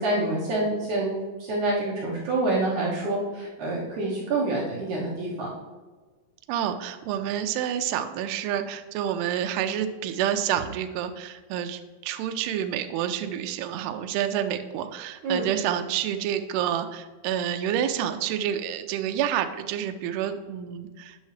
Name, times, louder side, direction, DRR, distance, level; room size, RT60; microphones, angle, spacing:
voice 1, 0.0-5.5 15.2-15.4, right 2 dB, 65° right, -5 dB, 2.0 m, -27 dB
voice 2, 6.5-21.2, right 10 dB, 80° right, 8 dB, 2.5 m, -28 dB
9.2 x 6.3 x 3.2 m, 1.3 s
omnidirectional pair, 4.8 m